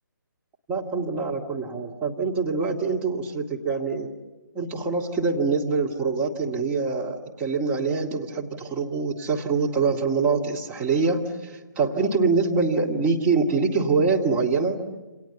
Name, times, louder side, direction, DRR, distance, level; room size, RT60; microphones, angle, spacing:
voice 1, 0.7-4.1 4.5-14.8, right 4 dB, 10° right, -2 dB, 2.1 m, -24 dB
28.5 x 27.0 x 7.1 m, 1.2 s
figure-of-eight pair, 145°, 11 cm